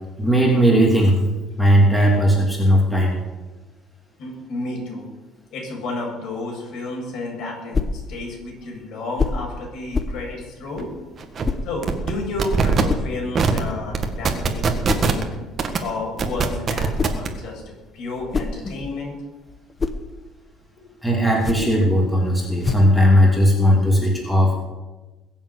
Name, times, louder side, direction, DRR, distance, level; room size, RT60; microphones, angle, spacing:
voice 1, 0.2-1.2 1.6-3.2 21.0-24.6, equal, ahead, -2 dB, 2.8 m, -17 dB
voice 2, 4.2-5.1 5.5-10.9 11.6-15.3 15.8-17.6 17.9-19.2, left 2 dB, 60° left, 0 dB, 6.9 m, -31 dB
sound 1, 7.7-8.1 9.2-9.5 9.9-10.2 11.4-11.7 12.9-13.2 14.9-15.2 16.7-17.3 18.1-19.0 19.5-20.1 21.3-21.8 22.6-23.0, left 4 dB, 20° left, 1.1 m, -26 dB
sound 2, 10.8-10.9 11.2-11.4 11.8-12.1 12.4-12.8 13.3-13.6 13.9-15.2 15.6-15.8 16.2-17.3, right 5 dB, 35° right, 1.8 m, -20 dB
21.0 x 7.4 x 8.4 m, 1.2 s
cardioid pair, 145°, 0 cm